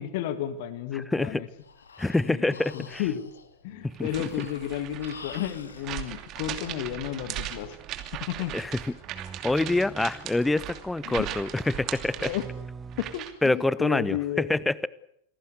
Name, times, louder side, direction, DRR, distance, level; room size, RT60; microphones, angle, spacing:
voice 1, 0.0-1.5 2.3-3.3 3.6-7.8 8.1-8.5 11.1-11.3 12.2-12.4 13.0-14.5, left 11 dB, 50° left, 12 dB, 1.7 m, -32 dB
voice 2, 0.9-1.4 2.0-3.0 3.8-4.1 8.5-8.8 9.4-12.3 13.4-14.9, left 2 dB, 5° left, 20 dB, 0.9 m, -26 dB
Breathing, 1.3-5.9, left 5 dB, 70° left, 2.4 m, -48 dB
sound 1, 3.7-4.6 6.4-13.2, right 6 dB, 20° right, 1.1 m, -47 dB
sound 2, 3.9-13.5, right 12 dB, 35° right, 2.7 m, -38 dB
27.5 x 18.5 x 8.1 m, 0.72 s
figure-of-eight pair, 90°, 0 cm